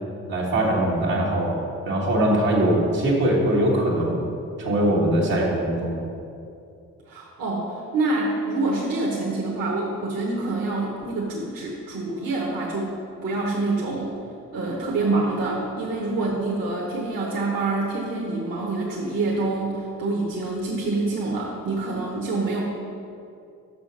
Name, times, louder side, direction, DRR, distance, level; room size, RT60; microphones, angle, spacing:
voice 1, 0.3-1.6 1.8-4.2 4.6-6.0, right 1 dB, 90° right, -5 dB, 1.5 m, -21 dB
voice 2, 7.1-14.1 14.5-22.6, right 2 dB, 70° right, -2 dB, 1.1 m, -26 dB
6.0 x 5.8 x 5.1 m, 2.5 s
supercardioid pair, 50°, 34 cm